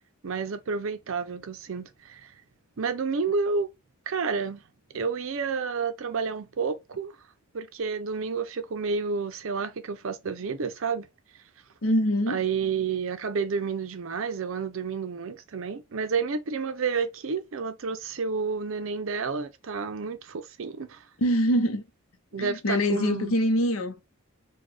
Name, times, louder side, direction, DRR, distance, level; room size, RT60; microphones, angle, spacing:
voice 1, 0.2-2.3 2.8-3.7 4.1-4.6 4.9-7.2 7.5-11.1 12.3-21.0 22.3-23.4, right 5 dB, 65° right, 0.5 m, -30 dB
voice 2, 11.8-12.4 21.2-21.8 22.4-24.0, equal, 70° left, 0.7 m, -24 dB
4.1 x 2.2 x 3.2 m
head